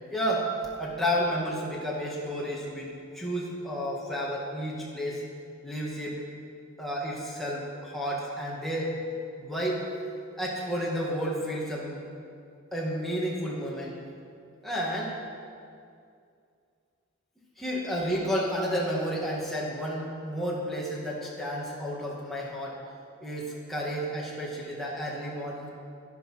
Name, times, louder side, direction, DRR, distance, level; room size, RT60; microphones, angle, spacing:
voice 1, 0.1-0.5 0.8-5.2 5.6-6.1 6.8-9.0 9.4-9.8 10.4-12.1 12.7-14.0 14.6-15.1 17.6-22.8 23.2-25.7, equal, ahead, -5 dB, 2.3 m, -31 dB
11.5 x 11.0 x 5.9 m, 2.4 s
head